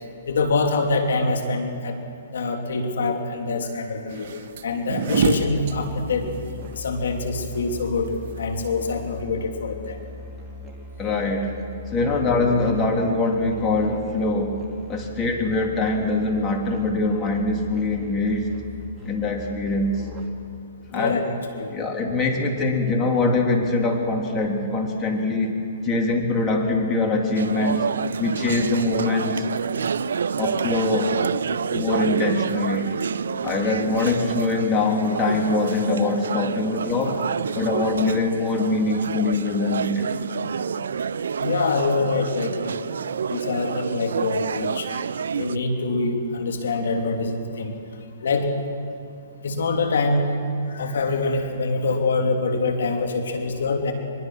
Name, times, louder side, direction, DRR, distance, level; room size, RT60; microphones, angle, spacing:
voice 1, 0.3-2.0 2.3-4.3 4.6-6.3 6.7-8.1 8.4-10.0 20.9-21.7 41.4-42.8 43.3-44.9 45.3-47.8 48.2-48.5 49.4-50.3 50.7-53.9, left 3 dB, 75° left, 4 dB, 3.1 m, -25 dB
sound 1, 4.1-9.2, right 5 dB, 55° right, 1.6 m, -28 dB
Musical instrument, 5.3-20.6, left 3 dB, 10° right, 2.3 m, -40 dB
voice 2, 11.0-11.5 11.9-14.6 14.9-18.5 19.0-20.0 20.9-21.2 21.7-25.5 25.8-27.8 28.2-29.4 30.4-31.1 31.7-32.9 33.4-37.2 37.5-40.1, left 2 dB, 20° left, 1 dB, 3.2 m, -23 dB
sound 2, 27.4-45.6, right 6 dB, 80° right, 0.5 m, -28 dB
23.0 x 22.0 x 6.3 m, 2.5 s
hypercardioid pair, 140°, 0 cm